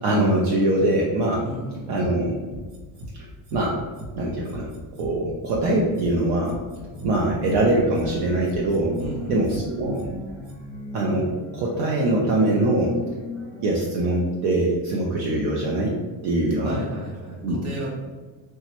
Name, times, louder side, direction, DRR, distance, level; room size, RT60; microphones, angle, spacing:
voice 1, 0.0-1.5 1.9-2.4 3.5-3.8 4.2-6.6 7.0-9.0 9.3-10.1 10.9-13.0 13.6-16.0 16.2-16.8 17.4-17.6, right 1 dB, 60° right, -3 dB, 0.6 m, -23 dB
voice 2, 1.4-1.9 9.0-9.4 16.6-17.9, right 1 dB, 35° right, -3 dB, 0.9 m, -34 dB
sound 1, 2.5-3.1 3.4-3.6 3.9-4.1 4.4-5.1 5.4-5.6 5.9-6.1 6.4-7.1 7.4-7.6 7.9-8.1 8.4-9.1 9.4-9.6 9.9-10.1 10.4-10.5, right 1 dB, 85° right, 0.9 m, -38 dB
sound 2, 6.6-13.8, left 2 dB, 5° right, 0.6 m, -38 dB
3.0 x 2.3 x 2.8 m, 1.3 s
cardioid pair, 150°, 43 cm